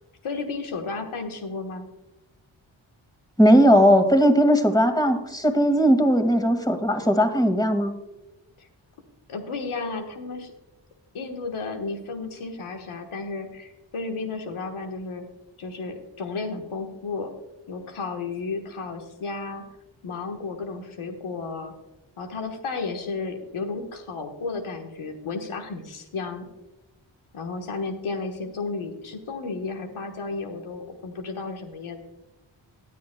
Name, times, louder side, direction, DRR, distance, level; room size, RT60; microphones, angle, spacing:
voice 1, 0.2-1.8 8.6-8.7 9.3-10.5 11.1-15.2 15.6-17.3 17.7-19.6 20.0-21.7 22.2-26.5 27.3-32.0, left 4 dB, 80° left, 3 dB, 1.4 m, -33 dB
voice 2, 3.4-7.9, equal, 10° left, 7 dB, 2.0 m, -18 dB
18.0 x 10.5 x 2.3 m, 1.0 s
cardioid pair, 40°, 49 cm